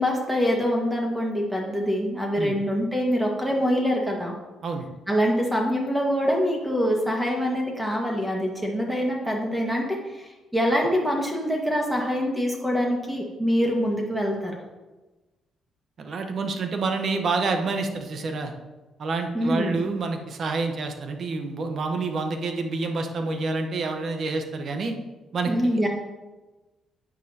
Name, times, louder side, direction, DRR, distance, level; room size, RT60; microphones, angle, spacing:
voice 1, 0.0-4.3 5.1-14.5 19.3-19.9 25.5-25.9, equal, 5° right, -1 dB, 1.8 m, -25 dB
voice 2, 16.0-18.5 19.0-24.9 25.3-25.9, right 3 dB, 55° right, 5 dB, 1.1 m, -28 dB
9.7 x 9.3 x 2.9 m, 1.1 s
cardioid pair, 90°, 0 cm